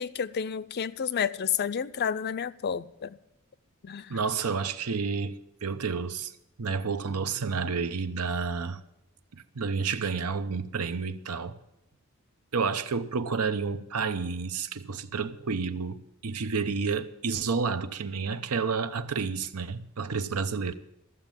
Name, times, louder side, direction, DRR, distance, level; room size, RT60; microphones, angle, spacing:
voice 1, 0.0-3.2 3.8-4.1, left 7 dB, 45° left, 0.4 m, -30 dB
voice 2, 4.1-6.3 6.6-8.8 9.3-11.6 12.5-20.7, right 5 dB, 85° right, 0.8 m, -30 dB
14.0 x 7.2 x 8.9 m
head